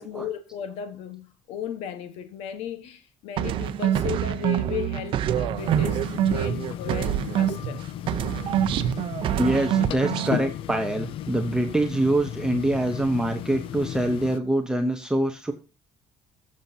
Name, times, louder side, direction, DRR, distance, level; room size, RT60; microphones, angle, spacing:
voice 1, 0.0-7.8 13.8-14.1, left 8 dB, 90° left, 1.2 m, -35 dB
sound 1, 3.4-7.8 8.1-10.4, right 11 dB, 55° right, 0.7 m, -25 dB
sound 2, 5.6-14.4, left 11 dB, 60° left, 0.5 m, -35 dB
voice 2, 9.4-15.5, right 1 dB, 5° right, 0.8 m, -24 dB
21.0 x 7.4 x 2.7 m
cardioid pair, 155°, 10 cm